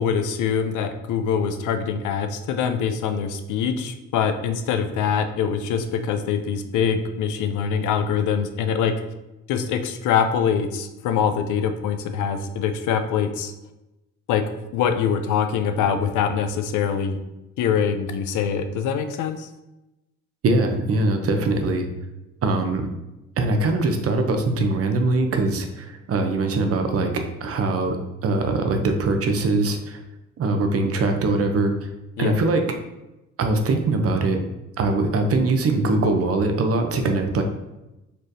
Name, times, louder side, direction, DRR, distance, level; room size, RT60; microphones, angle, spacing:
voice 1, 0.0-8.9 9.5-13.5 14.3-14.4 14.7-17.2 17.6-19.5 32.2-32.4, left 7 dB, 80° left, 8 dB, 0.5 m, -24 dB
voice 2, 20.4-21.9 22.4-22.9 23.4-28.0 28.2-30.0 30.4-31.9 32.2-32.6 33.4-34.4 34.8-37.4, right 2 dB, 50° right, 5 dB, 0.6 m, -22 dB
4.4 x 3.1 x 2.6 m, 0.97 s
cardioid pair, 90°, 30 cm